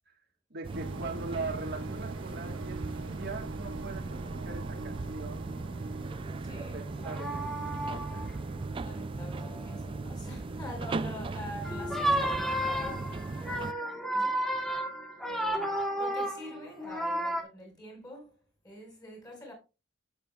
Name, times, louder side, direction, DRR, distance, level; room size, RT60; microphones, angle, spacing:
voice 1, 0.5-5.5 6.5-8.2, right 3 dB, 60° right, 1.5 m, -41 dB
sound 1, 0.6-13.7, right 3 dB, 25° right, 0.4 m, -38 dB
sound 2, 0.7-17.4, right 2 dB, 80° right, 0.9 m, -46 dB
voice 2, 6.4-6.9 8.8-13.2 14.1-14.5 15.2-19.5, left 1 dB, 20° left, 4.6 m, -45 dB
sound 3, 7.0-8.3 9.4-9.7 11.6-17.4, right 1 dB, ahead, 1.3 m, -32 dB
10.0 x 8.1 x 2.3 m
head